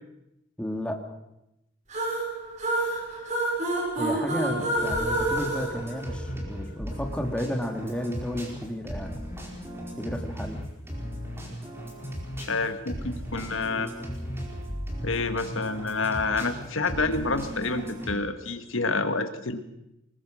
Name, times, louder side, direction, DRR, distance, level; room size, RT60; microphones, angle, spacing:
voice 1, 0.6-1.0 4.0-9.2 10.0-10.6, equal, 5° left, 3 dB, 1.9 m, -32 dB
sound 1, 1.9-6.6, right 1 dB, 40° right, 7.5 m, -28 dB
sound 2, 4.5-18.1, equal, 15° right, 4.7 m, -36 dB
voice 2, 12.4-13.9 15.0-19.6, left 3 dB, 85° left, 9 dB, 1.7 m, -28 dB
24.0 x 21.0 x 6.4 m, 0.87 s
head